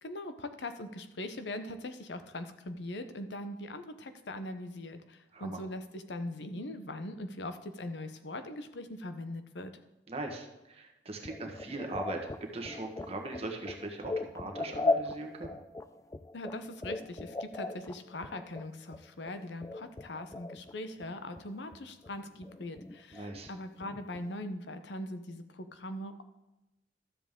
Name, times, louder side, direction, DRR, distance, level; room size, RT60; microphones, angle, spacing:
voice 1, 0.0-9.7 16.3-26.2, left 1 dB, 75° left, 9 dB, 0.8 m, -41 dB
voice 2, 10.1-12.2 12.5-15.6 23.1-23.5, right 2 dB, 35° right, 2 dB, 1.4 m, -40 dB
sound 1, 11.2-20.7 21.0-21.8 22.0-24.3, left 2 dB, 20° left, 0.3 m, -38 dB
12.5 x 7.3 x 3.7 m, 0.97 s
head